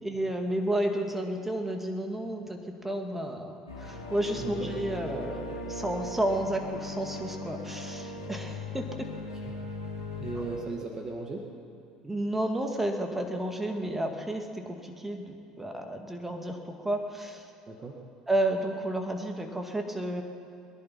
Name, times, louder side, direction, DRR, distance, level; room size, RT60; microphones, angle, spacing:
voice 1, 0.0-8.9 12.0-17.5 18.3-20.2, right 1 dB, 10° right, 4 dB, 2.1 m, -31 dB
sound 1, 3.7-10.6, left 2 dB, 90° left, 2.7 m, -39 dB
voice 2, 4.4-4.7 9.4-9.6 10.2-11.5 17.7-18.0, right 3 dB, 30° right, 1 dB, 1.9 m, -37 dB
22.5 x 11.0 x 5.8 m, 2.7 s
hypercardioid pair, 65°, 2 cm